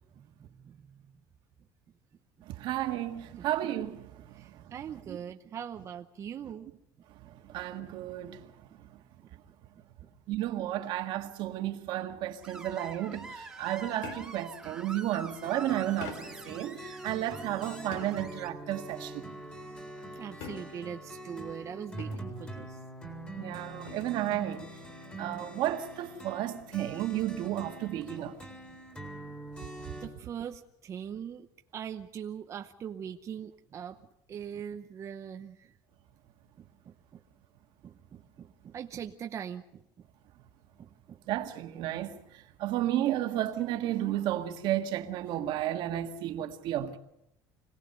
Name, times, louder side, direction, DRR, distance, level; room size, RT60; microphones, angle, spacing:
voice 1, 0.5-1.0 3.3-3.5 4.3-6.7 20.1-22.8 30.0-31.5 31.7-34.0 34.3-35.7 36.6-37.2 37.8-39.8 40.8-41.2, right 8 dB, 35° right, 0.8 m, -41 dB
voice 2, 2.5-4.1 4.4-4.5 5.1-5.2 7.5-8.4 10.3-19.3 23.4-24.7 25.2-28.3 41.3-42.2 42.6-47.0, right 13 dB, 65° right, 1.7 m, -32 dB
Screech, 12.4-18.5, right 2 dB, 5° right, 1.9 m, -46 dB
sound 1, 14.0-14.5 16.0-16.5 17.9-18.4 20.4-21.0 22.0-22.4 23.9-24.2, left 6 dB, 80° left, 3.3 m, -44 dB
sound 2, 15.4-30.1, right 1 dB, 15° left, 4.1 m, -44 dB
25.5 x 18.0 x 6.7 m
cardioid pair, 145°, 9 cm